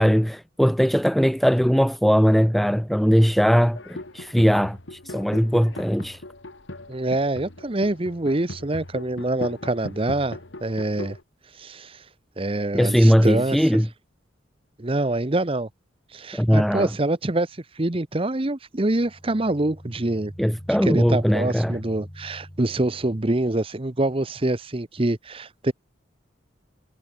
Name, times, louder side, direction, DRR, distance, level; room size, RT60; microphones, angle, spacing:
voice 1, 0.0-6.2 12.7-13.9 16.3-16.9 20.4-21.8, equal, ahead, 0.9 m, -20 dB
sound 1, 3.7-11.2, left 1 dB, 75° left, 2.5 m, -39 dB
voice 2, 6.9-11.2 11.6-12.0 12.4-13.6 14.8-15.7 16.1-20.3 20.8-25.7, right 2 dB, 30° right, 0.9 m, -25 dB
sound 2, 18.9-23.6, equal, 20° left, 7.8 m, -43 dB
head